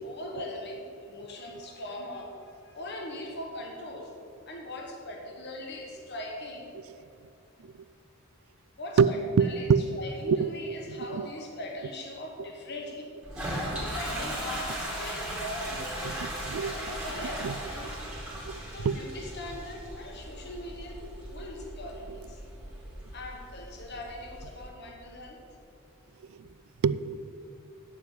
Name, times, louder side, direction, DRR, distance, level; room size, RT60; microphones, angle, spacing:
voice 1, 0.0-4.1 4.5-7.0 8.8-13.1 13.8-17.9 18.7-22.4 23.1-25.4, left 1 dB, 55° left, 1 dB, 1.2 m, -41 dB
voice 2, 9.4-10.0 10.3-11.3 13.7-13.8 16.1-17.0 17.4-17.6 18.4-19.0 26.4-26.5 26.8-27.2, right 6 dB, 75° right, 17 dB, 0.3 m, -26 dB
Toilet flush, 13.2-24.7, right 1 dB, 5° right, 2.3 m, -37 dB
9.4 x 7.1 x 7.7 m, 2.6 s
head